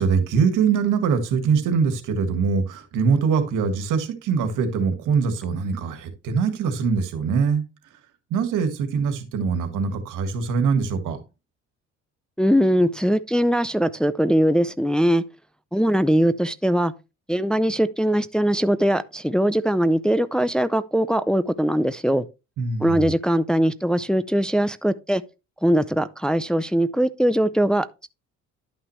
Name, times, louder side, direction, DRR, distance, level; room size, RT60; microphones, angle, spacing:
voice 1, 0.0-7.6 8.3-11.2 22.6-23.1, right 5 dB, 90° right, 1.7 m, -23 dB
voice 2, 12.4-15.2 15.7-16.9 17.3-22.3 22.8-25.2 25.6-28.1, equal, 5° left, 0.5 m, -21 dB
11.0 x 5.8 x 3.2 m
cardioid pair, 90°, 30 cm